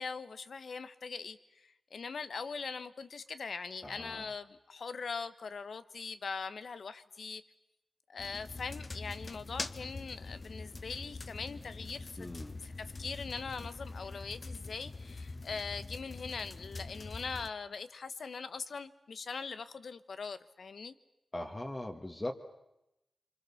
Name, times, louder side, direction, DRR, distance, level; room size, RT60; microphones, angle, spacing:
voice 1, 0.0-7.4 8.1-12.3 12.6-20.9, left 5 dB, 75° left, 12 dB, 1.2 m, -41 dB
voice 2, 3.8-4.3 12.2-12.6 21.3-22.3, left 1 dB, 25° left, 2 dB, 1.9 m, -40 dB
sound 1, 8.2-17.5, left 3 dB, 40° left, 1.1 m, -44 dB
25.5 x 25.0 x 7.2 m, 0.89 s
cardioid pair, 60°, 0 cm